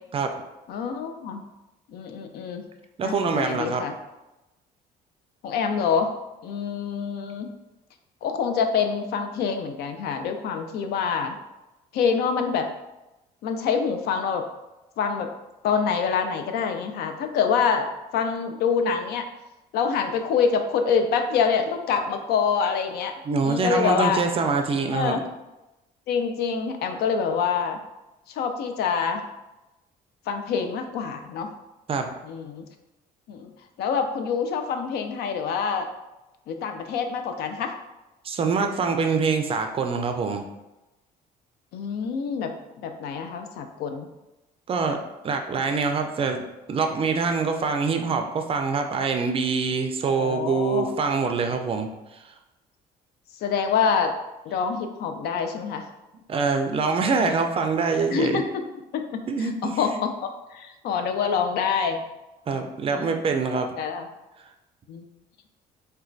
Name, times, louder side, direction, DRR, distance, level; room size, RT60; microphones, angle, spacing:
voice 1, 0.7-1.4 1.9-2.6 3.0-3.9 5.4-6.1 6.4-7.5 8.2-11.4 11.9-12.7 13.4-14.4 15.0-15.3 15.6-19.3 19.7-24.3 24.9-25.3 26.1-27.8 28.3-29.2 30.3-31.5 32.2-32.6 33.3-33.5 33.8-35.9 36.5-37.7 41.7-44.1 50.0-50.9 53.4-54.1 54.5-55.8 58.1-58.7 58.9-62.0 62.5-62.6 62.9-63.2 63.7-64.1 64.9-65.0, left 6 dB, 70° left, 6 dB, 0.4 m, -26 dB
voice 2, 3.0-3.8 23.3-25.2 31.9-32.1 38.2-40.4 44.7-45.0 45.2-52.2 56.3-58.4 59.3-60.0 62.5-63.7, right 4 dB, 35° right, 5 dB, 0.4 m, -25 dB
4.2 x 2.2 x 2.5 m, 0.99 s
cardioid pair, 110°, 17 cm